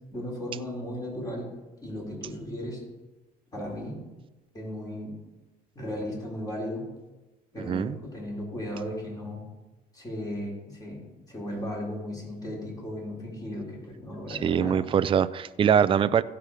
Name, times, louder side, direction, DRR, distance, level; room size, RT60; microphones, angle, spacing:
voice 1, 0.1-1.5 1.8-2.8 3.5-4.0 4.5-5.1 5.8-6.8 7.5-9.4 9.9-14.8, left 1 dB, 20° left, -3 dB, 3.9 m, -36 dB
voice 2, 7.7-8.0 14.3-16.2, right 8 dB, 30° right, 14 dB, 0.4 m, -23 dB
16.0 x 5.8 x 4.9 m, 1.1 s
cardioid pair, 110°, 17 cm